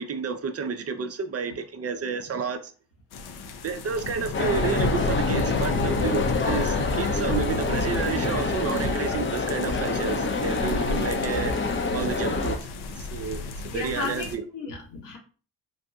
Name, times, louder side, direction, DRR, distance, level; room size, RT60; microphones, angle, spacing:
voice 1, 0.0-2.7 3.6-11.6 11.9-12.5 13.0-14.4, right 5 dB, 35° right, 0.6 m, -30 dB
sound 1, 3.1-14.4, left 3 dB, 70° left, 0.7 m, -32 dB
sound 2, 4.3-12.6, left 3 dB, 30° left, 0.7 m, -27 dB
voice 2, 13.7-15.2, left 3 dB, 85° left, 1.4 m, -34 dB
4.1 x 2.5 x 2.4 m
supercardioid pair, 60°, 41 cm